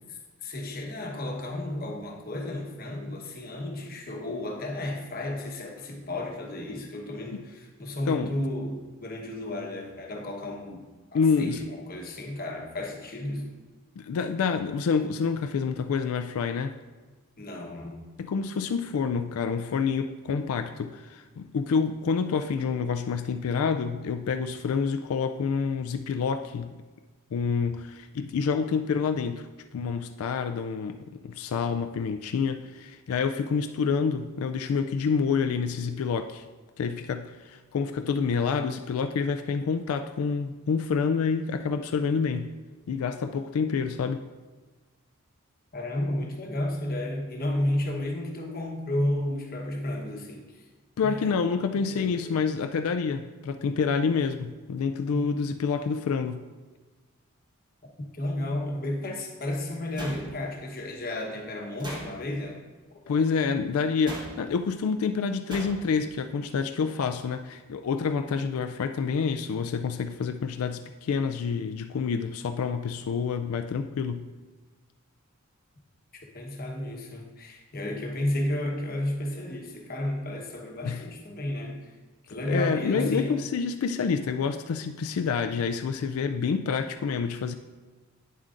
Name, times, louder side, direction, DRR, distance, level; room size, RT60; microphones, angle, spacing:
voice 1, 0.4-10.8 11.1-13.5 17.4-18.0 45.7-50.6 51.0-51.3 51.7-52.4 55.1-55.3 58.1-62.6 62.9-63.2 76.3-81.9 82.3-83.4, left 1 dB, 45° left, 1 dB, 1.1 m, -32 dB
voice 2, 11.1-11.6 14.0-16.7 18.2-26.7 27.3-29.5 29.7-36.4 36.8-42.5 42.9-44.3 51.0-56.4 63.1-74.3 80.8-81.0 82.4-87.5, left 5 dB, 90° left, 7 dB, 0.3 m, -28 dB
sound 1, 60.0-60.7 61.8-62.5 64.1-64.6 65.5-66.0, equal, 20° right, 1.1 m, -39 dB
9.3 x 7.4 x 2.5 m, 1.3 s
head